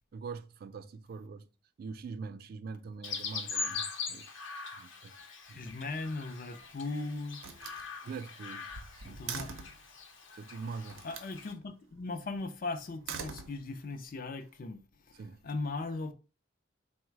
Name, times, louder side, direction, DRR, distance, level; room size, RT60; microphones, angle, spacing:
voice 1, 0.1-1.5 1.8-4.3 4.8-5.1 5.5-5.8 8.0-9.3 10.3-11.0 15.2-15.4, right 5 dB, 50° right, 0.3 m, -43 dB
Chirp tweet, 3.0-11.5, left 5 dB, 75° left, 0.8 m, -42 dB
voice 2, 5.4-7.4 9.0-9.5 11.0-16.1, left 3 dB, 45° left, 0.4 m, -38 dB
Slam, 6.3-6.9 7.4-9.9 10.9-11.3 12.8-14.0, right 6 dB, 90° right, 0.6 m, -44 dB
3.9 x 2.1 x 4.5 m
head